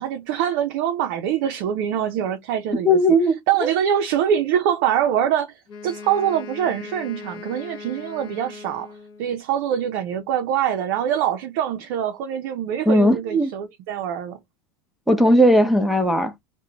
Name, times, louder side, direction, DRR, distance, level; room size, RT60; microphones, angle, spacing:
voice 1, 0.0-3.0 3.5-14.4, right 9 dB, 60° right, 0.5 m, -24 dB
voice 2, 2.8-3.7 12.9-13.5 15.1-16.3, equal, ahead, 0.8 m, -17 dB
Wind instrument woodwind instrument, 5.7-9.4, left 5 dB, 40° left, 1.0 m, -39 dB
2.5 x 2.1 x 2.9 m
hypercardioid pair, 105°, 12 cm